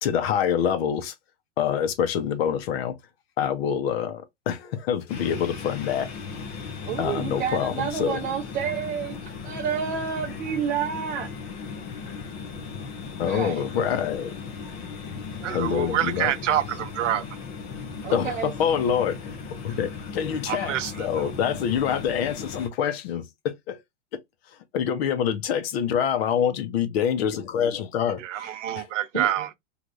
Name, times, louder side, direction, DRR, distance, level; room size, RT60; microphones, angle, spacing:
voice 1, 0.0-1.1 1.6-3.0 3.4-6.1 7.0-8.2 13.2-14.3 15.5-16.3 18.1-23.8 24.7-28.8, left 8 dB, 55° left, 0.8 m, -26 dB
sound 1, 5.1-22.7, left 5 dB, 20° left, 0.4 m, -37 dB
voice 2, 6.8-11.3 13.2-13.6 18.0-18.5 29.1-29.5, right 8 dB, 40° right, 0.7 m, -30 dB
voice 3, 15.4-17.3 20.5-21.1 28.2-29.5, right 11 dB, 80° right, 0.7 m, -27 dB
3.2 x 2.5 x 2.5 m
hypercardioid pair, 140°, 37 cm